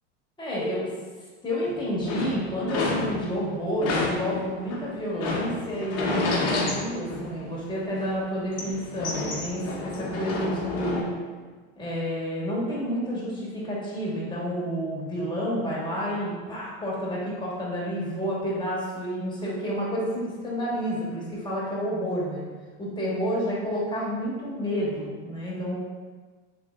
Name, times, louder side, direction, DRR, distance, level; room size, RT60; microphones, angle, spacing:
voice 1, 0.4-0.9 1.4-11.1 11.8-22.4 22.8-25.8, equal, 15° left, -6 dB, 1.2 m, -30 dB
sound 1, 1.7-3.4 3.8-7.6 7.9-11.0, left 3 dB, 50° left, 0.9 m, -30 dB
3.4 x 3.3 x 2.3 m, 1.4 s
hypercardioid pair, 100°, 33 cm